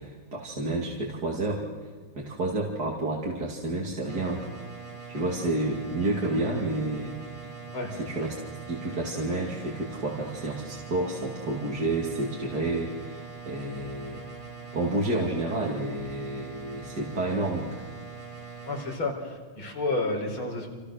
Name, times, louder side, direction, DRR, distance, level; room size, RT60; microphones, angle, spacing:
voice 1, 0.0-1.6 2.1-4.5 5.1-7.5 7.9-8.4 8.7-14.2 14.7-17.7, right 2 dB, 50° right, -1 dB, 3.2 m, -30 dB
sound 1, 4.1-19.0, right 5 dB, 15° right, 2.0 m, -42 dB
voice 2, 18.7-20.7, left 2 dB, 80° left, 1 dB, 5.9 m, -30 dB
29.5 x 27.5 x 6.7 m, 1.4 s
omnidirectional pair, 2.2 m